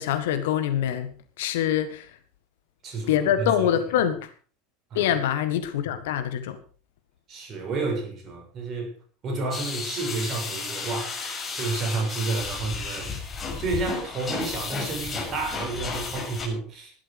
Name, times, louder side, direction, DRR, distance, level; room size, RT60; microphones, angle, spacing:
voice 1, 0.0-2.1 3.1-4.3 4.9-6.6, left 10 dB, 65° left, 11 dB, 1.7 m, -25 dB
voice 2, 2.8-3.7 4.9-5.2 7.3-8.9 9.2-13.1 13.6-16.9, right 3 dB, 40° right, 3 dB, 6.9 m, -31 dB
sound 1, 9.5-16.5, left 4 dB, 25° left, 6.6 m, -33 dB
16.5 x 12.0 x 5.1 m, 0.41 s
figure-of-eight pair, 75°, 0 cm